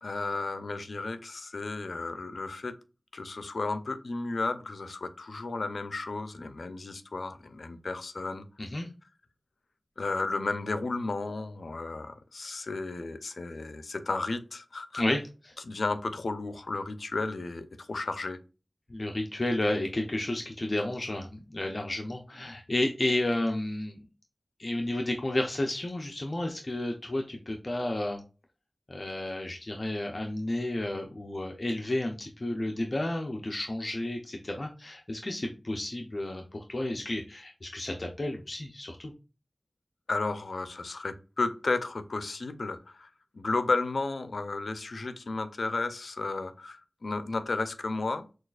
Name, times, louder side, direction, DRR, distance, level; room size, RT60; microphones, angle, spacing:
voice 1, 0.0-2.8 3.1-8.5 10.0-15.0 15.6-18.4 40.1-48.3, left 3 dB, 85° left, 0.5 m, -33 dB
voice 2, 18.9-24.0 24.6-28.2 28.9-39.1, left 1 dB, 45° left, 0.6 m, -32 dB
6.2 x 2.4 x 2.4 m
wide cardioid pair, 65°, 0 cm